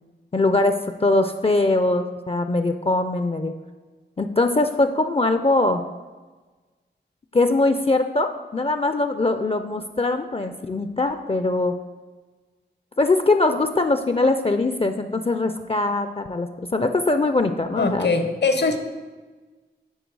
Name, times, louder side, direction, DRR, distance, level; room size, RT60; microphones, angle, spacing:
voice 1, 0.3-3.5 4.2-5.8 7.3-11.7 13.0-18.1, left 2 dB, 30° left, 8 dB, 0.4 m, -22 dB
voice 2, 17.8-18.8, left 3 dB, 65° left, 7 dB, 0.8 m, -21 dB
9.1 x 4.3 x 4.6 m, 1.3 s
wide cardioid pair, 75°, 19 cm